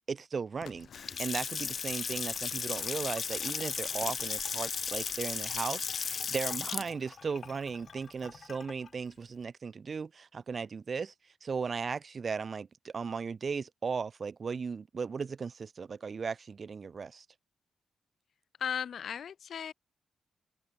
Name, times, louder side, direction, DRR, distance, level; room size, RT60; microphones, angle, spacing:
voice 1, 0.1-0.9 1.2-11.1 11.4-17.3, right 5 dB, 45° right, 0.3 m, -36 dB
sound 1, 0.5-5.6, left 10 dB, 85° left, 3.8 m, -56 dB
Water tap faucet / Sink (filling or washing) / Splash splatter, 0.8-8.9, left 6 dB, 55° left, 0.3 m, -36 dB
voice 2, 18.6-19.7, left 8 dB, 70° left, 0.7 m, -36 dB
open air
cardioid pair, 90°, 0 cm